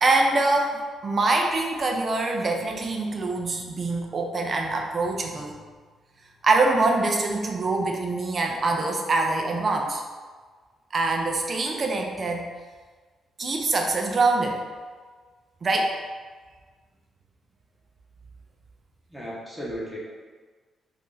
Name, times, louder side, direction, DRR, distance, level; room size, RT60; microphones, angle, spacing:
voice 1, 0.0-5.6 6.4-10.0 10.9-12.5 13.4-14.6 15.6-15.9, right 3 dB, 40° right, 2 dB, 0.4 m, -24 dB
voice 2, 19.1-20.0, equal, 5° left, -6 dB, 0.9 m, -35 dB
2.8 x 2.5 x 3.8 m, 1.5 s
cardioid pair, 110°, 0 cm